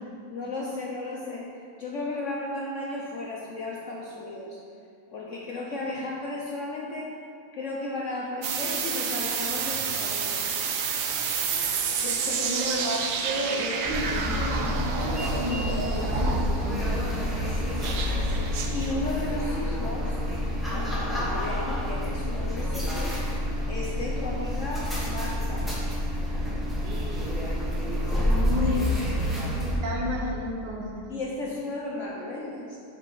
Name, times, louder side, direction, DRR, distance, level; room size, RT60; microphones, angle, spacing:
voice 1, 0.3-1.5 1.8-4.6 5.1-7.1 7.5-10.6 12.0-12.6 17.3-20.2 20.7-23.2 23.7-25.7 28.1-28.4 31.1-32.8, left 2 dB, 75° left, -3 dB, 0.7 m, -35 dB
sound 1, 8.4-16.8 17.8-18.9, right 6 dB, 90° right, 0.7 m, -30 dB
voice 2, 12.4-16.9 26.8-27.4 28.2-28.9 29.8-31.1, left 1 dB, 60° right, -1 dB, 1.6 m, -32 dB
sound 2, 13.8-29.8, left 1 dB, ahead, 0.9 m, -28 dB
7.0 x 4.4 x 5.4 m, 2.4 s
omnidirectional pair, 2.2 m